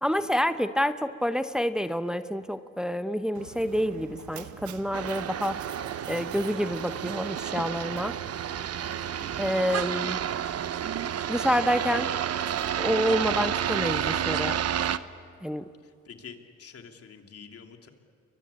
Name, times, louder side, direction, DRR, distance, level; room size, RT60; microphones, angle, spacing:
voice 1, 0.0-5.6 6.1-8.1 9.4-10.2 11.3-12.1 12.8-14.6 15.4-15.6, equal, ahead, 11 dB, 0.9 m, -28 dB
Mechanisms, 3.4-14.1, right 10 dB, 75° right, 1.3 m, -43 dB
sound 1, 4.9-15.0, right 9 dB, 55° right, 1.0 m, -30 dB
voice 2, 8.9-9.3 16.0-17.9, left 6 dB, 50° left, 4 dB, 2.8 m, -47 dB
29.5 x 23.0 x 8.5 m, 2.2 s
cardioid pair, 90°, 30 cm